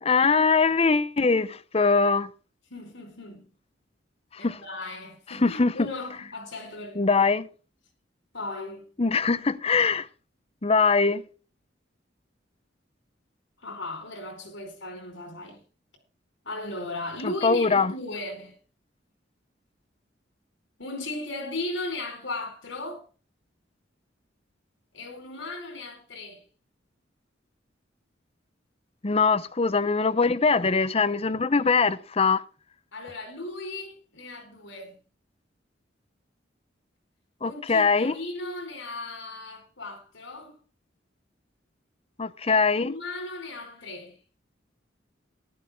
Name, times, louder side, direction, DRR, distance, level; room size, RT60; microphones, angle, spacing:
voice 1, 0.0-2.3 4.4-4.6 5.4-5.7 7.0-7.5 9.0-10.1 10.6-11.2 17.4-17.9 29.0-32.4 37.4-38.1 42.2-42.9, left 4 dB, 30° left, 0.7 m, -22 dB
voice 2, 2.7-3.5 4.4-7.0 8.3-8.9 13.6-15.6 16.4-18.6 20.8-23.0 24.9-26.4 32.9-35.0 37.4-40.6 42.5-44.2, left 2 dB, 80° left, 4.4 m, -37 dB
14.5 x 11.5 x 3.6 m
head